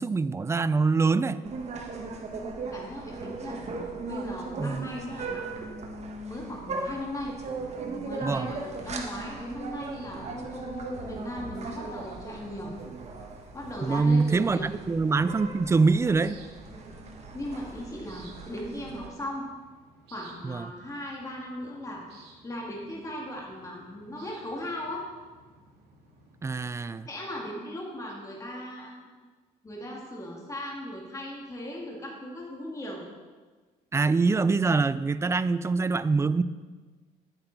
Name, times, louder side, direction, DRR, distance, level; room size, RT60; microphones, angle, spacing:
voice 1, 0.0-1.4 4.6-4.9 8.2-8.5 13.8-16.4 20.4-20.7 26.4-27.1 33.9-36.4, right 4 dB, 15° right, 15 dB, 0.3 m, -24 dB
sound 1, 1.4-19.1, right 4 dB, 40° right, 1.4 m, -39 dB
voice 2, 2.3-3.6 4.0-7.3 8.0-12.7 13.5-14.7 16.7-16.9 17.3-19.5 20.1-25.0 27.1-29.1 29.6-33.0, left 1 dB, 20° left, -2 dB, 2.0 m, -38 dB
sound 2, 8.0-26.4, right 3 dB, 80° right, 2.3 m, -57 dB
sound 3, 9.8-17.8, left 2 dB, 75° left, 3.5 m, -56 dB
10.5 x 8.7 x 4.0 m, 1.4 s
cardioid pair, 110°, 17 cm